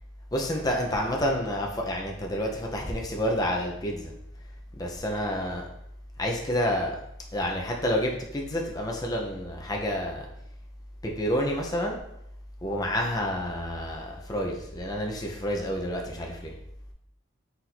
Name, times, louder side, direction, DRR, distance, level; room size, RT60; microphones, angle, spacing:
voice 1, 0.3-4.1 4.8-5.7 6.2-7.0 7.3-10.3 11.0-12.0 12.6-16.5, equal, 20° left, 0 dB, 0.5 m, -29 dB
4.3 x 2.6 x 4.1 m, 0.78 s
head